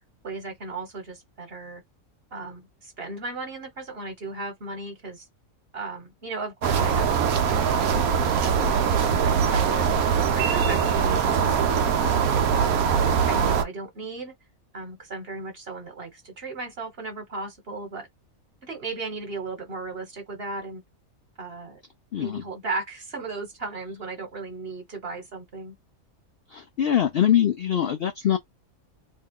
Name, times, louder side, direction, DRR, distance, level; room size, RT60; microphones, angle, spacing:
voice 1, 0.2-1.8 2.3-5.3 5.7-7.1 7.4-8.9 9.2-12.7 13.3-14.3 14.7-18.1 18.6-20.8 21.4-21.8 22.1-25.8, right 3 dB, 45° right, 1.5 m, -36 dB
sound 1, 6.6-13.6, right 7 dB, 80° right, 1.1 m, -22 dB
voice 2, 22.1-22.4 26.5-28.4, left 10 dB, 65° left, 0.6 m, -23 dB
3.0 x 2.3 x 3.6 m
omnidirectional pair, 1.5 m